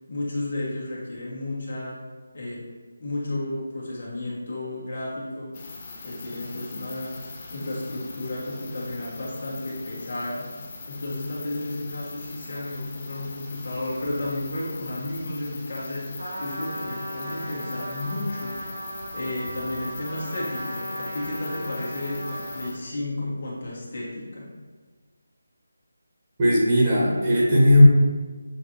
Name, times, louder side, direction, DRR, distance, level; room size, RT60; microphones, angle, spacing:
voice 1, 0.1-2.0 2.3-2.7 3.0-5.5 6.0-7.1 7.5-10.5 10.9-24.5, left 1 dB, 55° left, -6 dB, 1.5 m, -32 dB
sound 1, 5.5-22.7, left 3 dB, 30° left, 0.6 m, -41 dB
Trumpet, 16.2-22.8, right 1 dB, 85° right, 1.4 m, -36 dB
voice 2, 26.4-27.8, left 1 dB, 25° right, -7 dB, 1.3 m, -18 dB
7.0 x 2.5 x 2.9 m, 1.4 s
figure-of-eight pair, 165°, 0 cm